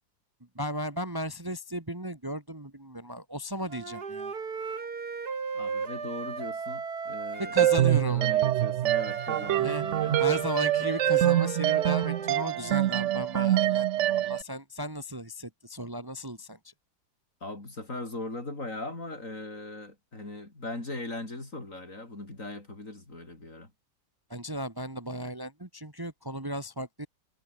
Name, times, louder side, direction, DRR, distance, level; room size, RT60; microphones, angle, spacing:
voice 1, 0.6-4.3 7.4-8.4 9.6-9.8 10.2-16.6 24.3-27.1, equal, 15° right, 1.9 m, -35 dB
Wind instrument woodwind instrument, 3.7-7.8 8.8-12.8, right 5 dB, 65° right, 3.0 m, -36 dB
voice 2, 5.5-10.4 10.8-10.9 17.4-23.7, left 2 dB, 50° left, 5.9 m, -39 dB
sound 1, 7.6-14.4, right 13 dB, 80° right, 0.6 m, -25 dB
omnidirectional pair, 1.8 m